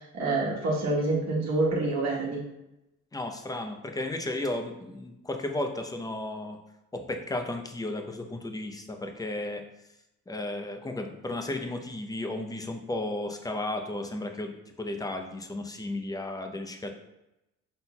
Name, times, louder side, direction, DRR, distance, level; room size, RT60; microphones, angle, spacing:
voice 1, 0.1-2.4, right 2 dB, 60° right, -4 dB, 1.3 m, -27 dB
voice 2, 3.1-6.6 6.9-9.6 10.3-16.9, left 2 dB, 10° left, 5 dB, 0.6 m, -34 dB
6.0 x 3.8 x 2.3 m, 0.92 s
cardioid pair, 90°, 30 cm